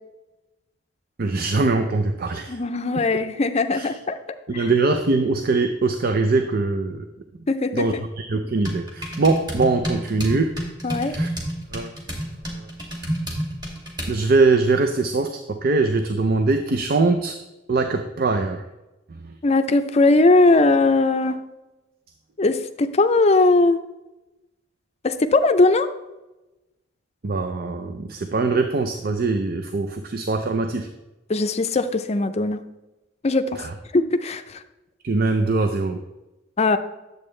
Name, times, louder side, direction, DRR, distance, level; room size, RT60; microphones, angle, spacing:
voice 1, 1.2-2.6 3.7-3.9 4.5-7.0 7.7-10.5 11.0-11.3 11.7-11.9 12.6-12.7 14.1-17.4 17.7-18.6 19.2-19.3 27.2-30.9 33.6-33.7 35.0-36.0, right 3 dB, 55° right, 6 dB, 0.5 m, -22 dB
voice 2, 2.5-4.2 4.5-4.6 7.5-8.0 10.8-11.2 19.4-21.4 22.4-23.8 25.0-25.9 31.3-32.6 33.2-33.6 33.9-34.6 36.6-36.8, left 2 dB, 35° left, 9 dB, 0.5 m, -19 dB
sound 1, 8.6-14.2, equal, 25° right, 2.2 m, -30 dB
10.5 x 7.7 x 3.2 m, 1.0 s
head